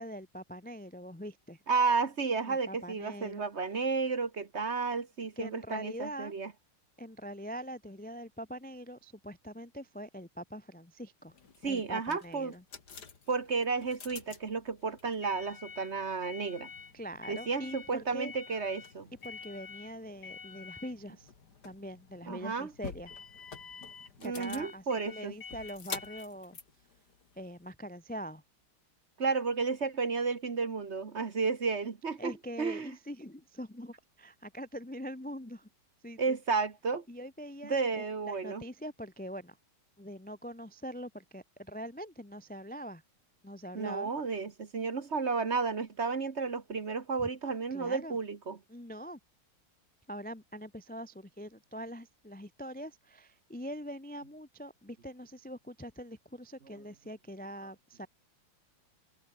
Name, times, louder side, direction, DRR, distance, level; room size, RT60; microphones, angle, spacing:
voice 1, 0.0-1.6 2.5-3.4 5.4-6.3 7.0-11.3 11.7-12.6 16.9-18.3 19.2-21.3 21.6-23.1 24.2-26.6 27.4-28.4 32.2-35.7 36.0-36.4 37.1-39.6 40.0-43.0 43.4-44.1 47.2-47.3 47.7-48.2 48.7-49.2 50.1-58.1, equal, 10° left, 0.4 m, -43 dB
voice 2, 1.7-6.5 11.6-12.5 13.3-16.7 17.3-19.1 22.3-22.7 24.2-25.3 29.2-32.3 32.6-32.9 36.2-37.0 37.6-38.6 43.7-48.6, right 4 dB, 35° right, 1.4 m, -32 dB
sound 1, 11.3-27.7, left 5 dB, 50° left, 2.7 m, -47 dB
omnidirectional pair, 2.3 m